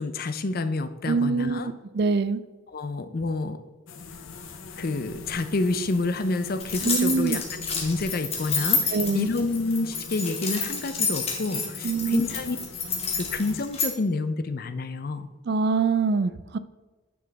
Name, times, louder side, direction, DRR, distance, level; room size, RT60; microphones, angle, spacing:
voice 1, 0.0-1.7 2.7-3.6 4.8-12.6 13.1-15.3, left 3 dB, 45° left, 10 dB, 0.5 m, -28 dB
voice 2, 1.1-2.4 6.8-7.4 8.9-9.3 11.8-12.2 15.5-16.6, right 4 dB, 55° right, 14 dB, 0.4 m, -24 dB
sound 1, 3.9-13.6, left 3 dB, 75° left, 0.8 m, -42 dB
sound 2, 6.6-13.9, left 5 dB, 30° left, 1.4 m, -29 dB
9.3 x 6.0 x 3.5 m, 1.2 s
head